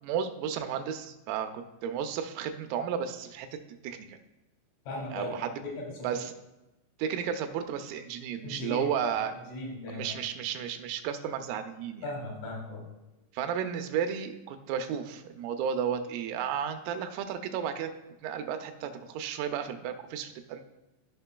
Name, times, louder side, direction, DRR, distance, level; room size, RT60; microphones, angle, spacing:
voice 1, 0.0-3.6 3.8-4.2 5.1-5.5 6.0-6.3 7.0-9.3 9.9-12.0 13.3-17.9 18.2-20.6, right 8 dB, 85° right, 6 dB, 3.3 m, -33 dB
voice 2, 4.9-6.1 8.4-10.2 12.0-12.9, left 2 dB, 75° left, -2 dB, 4.7 m, -38 dB
14.0 x 5.7 x 2.2 m, 1.0 s
omnidirectional pair, 5.8 m